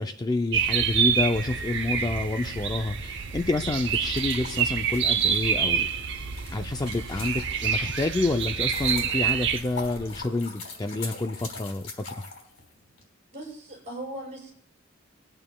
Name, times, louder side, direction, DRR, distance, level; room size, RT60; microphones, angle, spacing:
voice 1, 0.0-5.9 6.5-12.1, left 2 dB, 20° left, 7 dB, 0.3 m, -28 dB
sound 1, 0.5-9.6, right 7 dB, 60° right, 0.7 m, -27 dB
sound 2, 0.5-10.3, right 1 dB, 75° right, 1.8 m, -46 dB
sound 3, 3.8-7.9 8.3-13.0, left 4 dB, 90° left, 3.3 m, -42 dB
voice 2, 13.3-14.5, right 1 dB, 35° right, -2 dB, 6.0 m, -38 dB
26.0 x 8.8 x 2.2 m, 0.66 s
head